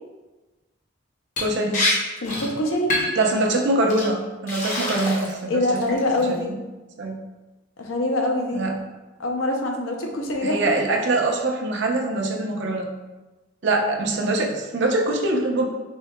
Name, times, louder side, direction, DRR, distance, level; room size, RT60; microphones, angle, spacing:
Liquid, 1.4-1.5 1.7-1.9 2.2-2.5 2.9-3.2 3.9-4.0 4.5-5.4 5.7-6.2, left 1 dB, 40° left, 0.8 m, -25 dB
voice 1, 1.4-1.8 3.2-5.8 6.3-6.6 7.0-7.2 8.5-8.7 10.4-12.9 13.6-15.7, right 2 dB, 60° right, 1 dB, 0.6 m, -23 dB
voice 2, 2.2-2.9 5.5-6.5 7.8-8.8 9.2-10.6, left 1 dB, 85° left, 1 dB, 0.7 m, -24 dB
4.5 x 3.6 x 2.2 m, 1.1 s
head